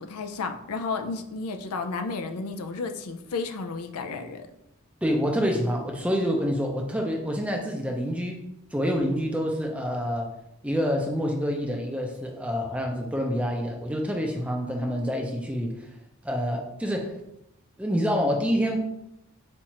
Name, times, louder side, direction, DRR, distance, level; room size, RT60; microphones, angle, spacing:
voice 1, 0.0-4.5, left 4 dB, 85° left, 7 dB, 0.5 m, -32 dB
voice 2, 5.0-8.4 8.7-10.3 10.6-15.9 16.2-17.2 17.8-18.8, equal, 5° right, 1 dB, 0.5 m, -27 dB
4.5 x 2.5 x 4.2 m, 0.84 s
head